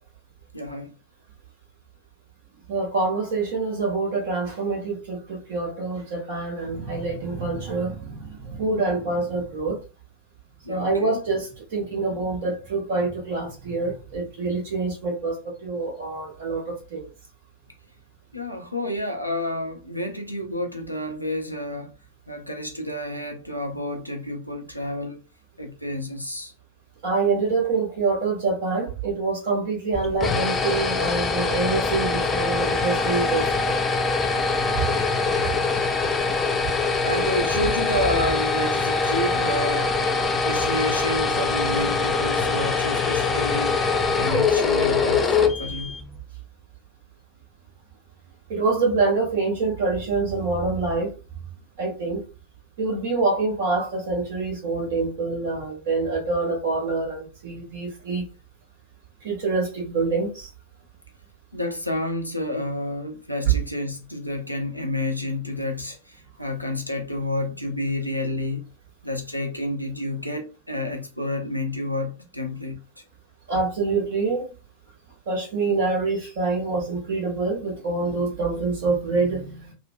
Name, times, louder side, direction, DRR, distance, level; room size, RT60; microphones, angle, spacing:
voice 1, 0.5-0.9 10.6-11.2 18.3-21.9 22.3-25.2 25.6-26.5 37.0-39.9 40.4-43.8 44.2-45.9 61.5-66.0 66.4-68.7 69.0-72.8, left 1 dB, 90° left, 0.6 m, -29 dB
voice 2, 2.7-9.8 10.7-17.1 27.0-33.7 34.7-34.8 35.4-35.5 48.5-51.1 51.8-52.2 52.8-58.2 59.2-60.5 63.4-63.5 73.5-74.5 75.3-79.7, right 3 dB, 55° right, 1.3 m, -26 dB
sound 1, 29.9-46.1, left 4 dB, 20° left, 0.4 m, -23 dB
3.1 x 2.1 x 2.4 m
figure-of-eight pair, 90°, 0 cm